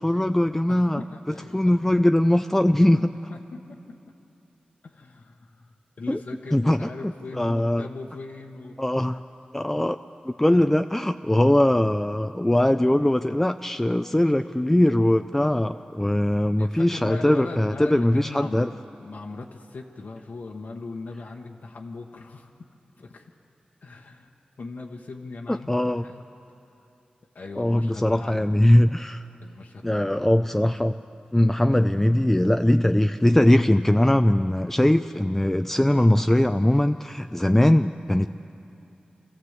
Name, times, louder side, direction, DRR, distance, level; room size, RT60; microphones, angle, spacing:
voice 1, 0.0-1.0 1.5-3.1 6.1-6.2 6.5-7.9 8.8-9.2 9.5-10.0 10.2-18.7 25.5-26.0 27.6-29.2 29.8-31.0 31.3-38.5, left 1 dB, 10° left, 8 dB, 0.4 m, -21 dB
voice 2, 0.7-1.7 3.3-3.8 4.8-8.8 16.6-18.7 19.0-22.5 23.0-23.3 23.8-24.3 24.6-26.2 27.3-28.7 29.4-30.3, left 3 dB, 80° left, 0 dB, 1.2 m, -39 dB
25.5 x 15.0 x 8.1 m, 2.8 s
wide cardioid pair, 85°, 3 cm